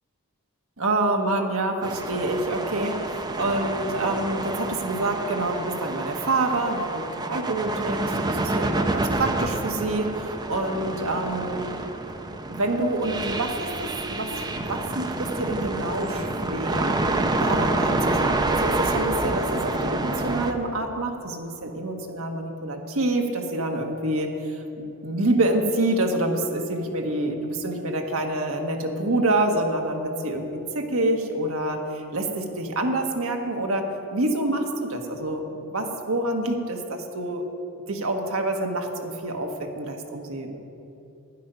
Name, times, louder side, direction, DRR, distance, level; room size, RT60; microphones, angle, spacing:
voice 1, 0.8-11.8 12.5-17.0 17.4-35.4 35.7-37.4 37.9-40.6, right 2 dB, 65° right, 3 dB, 1.3 m, -27 dB
sound 1, 1.8-20.5, right 2 dB, 20° right, 0.6 m, -28 dB
12.0 x 10.0 x 5.6 m, 2.8 s
head